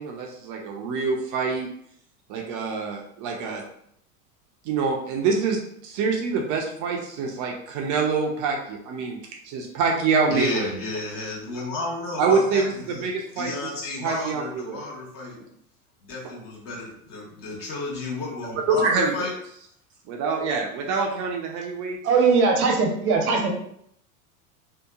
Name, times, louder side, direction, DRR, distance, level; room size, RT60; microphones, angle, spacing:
voice 1, 0.0-1.7 2.3-3.6 4.6-10.7 12.2-13.5 14.0-14.8 18.7-19.3 20.1-22.0, right 4 dB, 45° right, 1 dB, 0.5 m, -25 dB
voice 2, 10.3-13.1 13.3-15.4 16.0-19.3, left 2 dB, 45° left, -3 dB, 1.3 m, -32 dB
voice 3, 22.0-23.5, right 4 dB, 75° right, 1 dB, 0.8 m, -20 dB
2.8 x 2.1 x 2.4 m, 0.70 s
hypercardioid pair, 90°, 45 cm